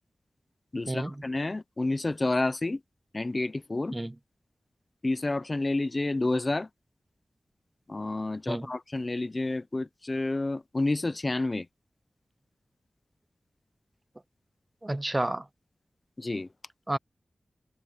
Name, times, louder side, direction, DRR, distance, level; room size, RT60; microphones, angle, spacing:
voice 1, 0.7-2.8 3.1-4.0 5.0-6.7 7.9-11.7 16.2-16.5, left 2 dB, 30° left, 0.6 m, -29 dB
voice 2, 14.8-15.5 16.9-17.0, right 1 dB, 20° right, 0.4 m, -30 dB
wide cardioid pair, 105°, 0 cm